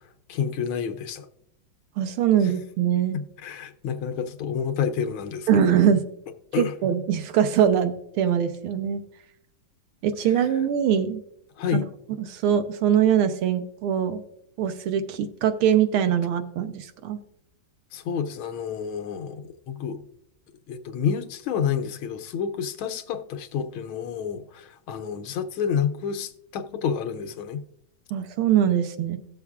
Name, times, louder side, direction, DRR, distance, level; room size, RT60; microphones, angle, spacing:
voice 1, 0.3-1.3 3.1-5.5 6.5-6.8 11.6-11.9 17.9-20.0 20.7-27.6, left 7 dB, 80° left, 1.5 m, -29 dB
voice 2, 2.0-3.2 5.5-6.0 6.6-9.0 10.0-11.2 11.7-11.8 12.2-14.2 14.6-17.2 28.1-29.2, right 9 dB, 85° right, 1.7 m, -22 dB
17.5 x 7.0 x 2.4 m
omnidirectional pair, 2.3 m